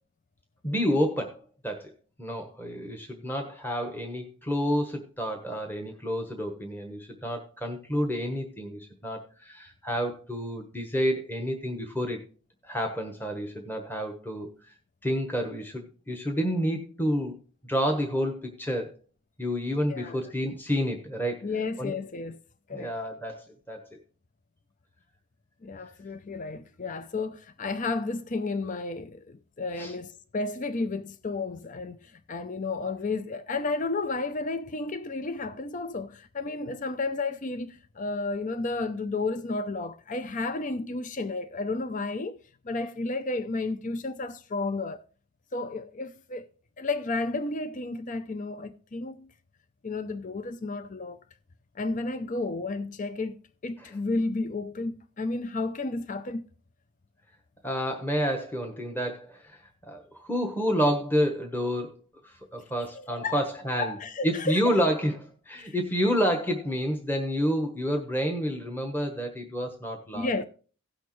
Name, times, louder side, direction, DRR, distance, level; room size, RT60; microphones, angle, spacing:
voice 1, 0.6-1.9 2.2-12.2 12.6-14.7 15.0-17.3 17.6-18.9 19.4-21.5 21.8-21.9 22.7-23.9 29.8-29.9 53.8-53.9 57.6-59.6 59.9-62.0 62.2-64.0 64.2-70.4, equal, 10° left, 1.2 m, -29 dB
voice 2, 21.4-22.4 22.7-22.9 25.6-42.4 42.6-45.0 45.5-46.5 46.8-49.3 49.8-51.2 51.8-53.4 53.6-56.4 62.9-63.4 63.8-64.8 65.6-65.7 70.1-70.4, left 3 dB, 35° left, 0.5 m, -32 dB
17.0 x 6.4 x 3.1 m
head